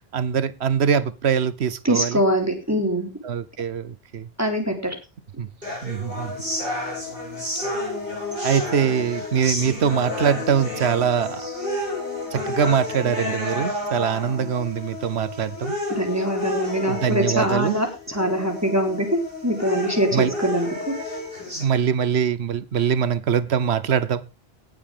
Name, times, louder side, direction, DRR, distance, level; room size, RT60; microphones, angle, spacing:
voice 1, 0.1-2.2 3.2-4.3 5.4-5.5 5.8-6.3 8.4-11.4 12.3-15.8 16.8-17.7 20.1-20.3 21.6-24.2, right 7 dB, 80° right, 1.1 m, -23 dB
voice 2, 1.8-3.1 4.4-4.9 15.9-19.1 19.4-20.9, equal, 15° right, 3.7 m, -23 dB
sound 1, 5.6-21.6, left 2 dB, 60° right, 8.1 m, -30 dB
18.0 x 7.3 x 3.6 m
omnidirectional pair, 1.1 m